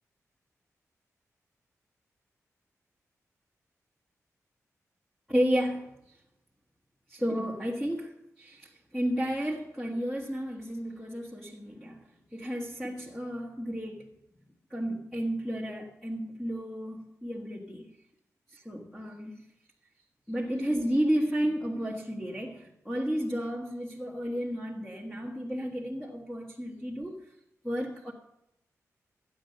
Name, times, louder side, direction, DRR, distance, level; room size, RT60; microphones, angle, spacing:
voice 1, 5.3-6.2 7.1-14.1 14.7-17.9 18.5-19.4 20.3-27.2 27.6-28.1, equal, 5° left, -1 dB, 1.4 m, -32 dB
15.0 x 9.5 x 6.7 m, 0.84 s
wide cardioid pair, 155°, 6 cm